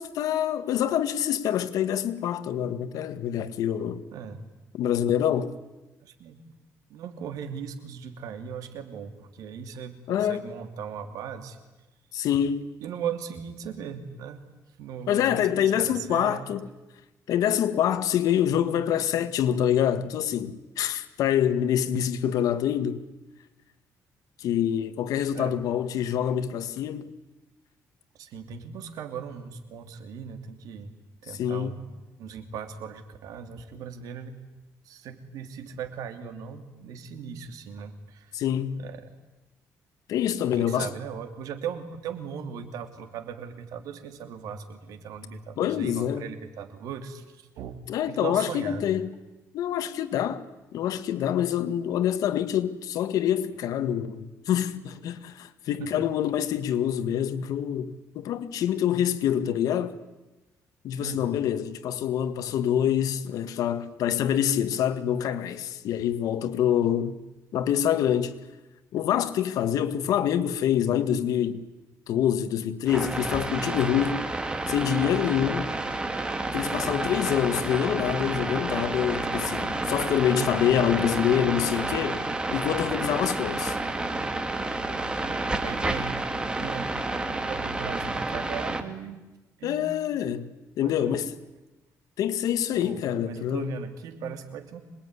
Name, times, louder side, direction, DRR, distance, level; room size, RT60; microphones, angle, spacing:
voice 1, 0.0-4.0 4.8-5.5 10.1-10.4 12.1-12.7 15.1-16.7 17.3-23.0 24.4-27.0 31.4-31.7 38.3-38.8 40.1-40.9 45.6-46.2 47.9-49.1 49.5-50.4 50.7-60.0 60.8-67.2 67.5-68.3 68.9-71.6 72.1-74.2 74.7-75.7 76.5-82.2 82.5-83.8 89.6-90.5 90.8-91.3 92.2-93.7, left 10 dB, 75° left, 1.8 m, -26 dB
voice 2, 6.0-6.4 6.9-11.6 12.8-14.4 14.8-16.5 25.3-25.6 28.2-30.9 31.2-31.9 32.2-34.4 34.8-38.3 38.8-39.1 40.5-49.0 55.8-56.0 61.0-61.4 80.3-80.7 81.8-81.9 85.6-86.1 86.6-86.9 87.5-89.2 89.6-89.8 90.8-91.2 92.7-94.8, right 7 dB, 80° right, 2.9 m, -38 dB
sound 1, 72.9-88.8, right 2 dB, 15° right, 2.2 m, -30 dB
26.0 x 21.0 x 9.9 m
cardioid pair, 135°, 6 cm